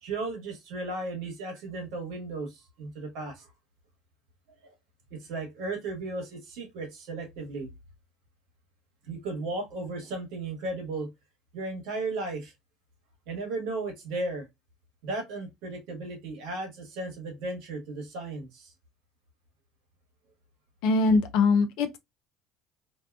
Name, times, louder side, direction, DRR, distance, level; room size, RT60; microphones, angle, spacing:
voice 1, 0.0-3.5 4.6-4.7 5.1-7.7 9.1-11.1 11.5-12.5 13.3-14.5 15.0-18.7 21.0-21.2, right 2 dB, 70° right, 1.1 m, -35 dB
voice 2, 20.8-22.0, left 3 dB, 70° left, 0.4 m, -22 dB
2.6 x 2.2 x 2.2 m
hypercardioid pair, 65°, 0 cm